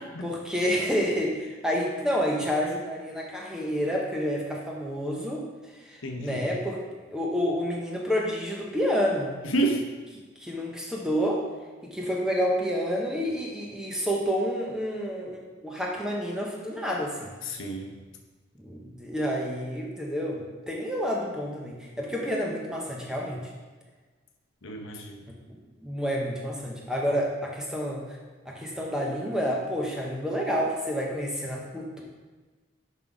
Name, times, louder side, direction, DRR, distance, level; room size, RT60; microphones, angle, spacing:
voice 1, 0.2-6.8 7.1-9.3 10.4-11.4 11.8-17.3 18.6-23.5 25.5-28.2 28.5-32.0, equal, 5° right, -2 dB, 0.9 m, -29 dB
voice 2, 6.0-6.4 9.4-9.8 17.4-17.9 24.6-25.3, right 2 dB, 75° left, 2 dB, 0.9 m, -30 dB
5.9 x 5.4 x 4.7 m, 1.3 s
head